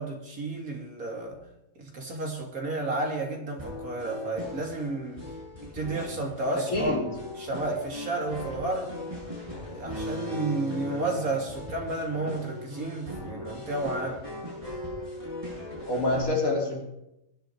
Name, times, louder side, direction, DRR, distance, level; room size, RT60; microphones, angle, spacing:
voice 1, 0.0-1.4 1.8-5.2 5.6-7.0 7.4-8.9 9.7-14.2, right 2 dB, 85° right, 3.2 m, -32 dB
sound 1, 3.6-16.2, equal, 20° right, 8.2 m, -38 dB
voice 2, 6.5-7.1 15.9-16.8, left 2 dB, 75° left, 3.9 m, -27 dB
21.0 x 11.5 x 4.7 m
omnidirectional pair, 1.5 m